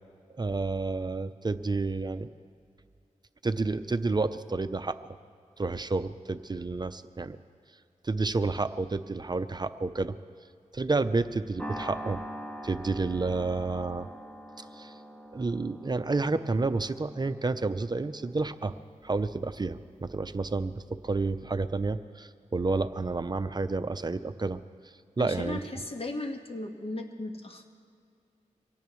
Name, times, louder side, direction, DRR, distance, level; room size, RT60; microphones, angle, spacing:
voice 1, 0.4-2.3 3.4-5.0 5.6-7.4 8.0-10.2 10.7-12.2 12.6-14.1 14.6-15.0 15.3-18.7 19.0-24.6 25.2-25.6, right 3 dB, 35° right, 11 dB, 0.6 m, -30 dB
sound 1, 11.6-20.1, equal, 10° left, 1.2 m, -44 dB
voice 2, 25.2-27.7, left 2 dB, 45° left, 4 dB, 1.6 m, -36 dB
24.5 x 17.5 x 3.2 m, 2.4 s
wide cardioid pair, 70°, 13 cm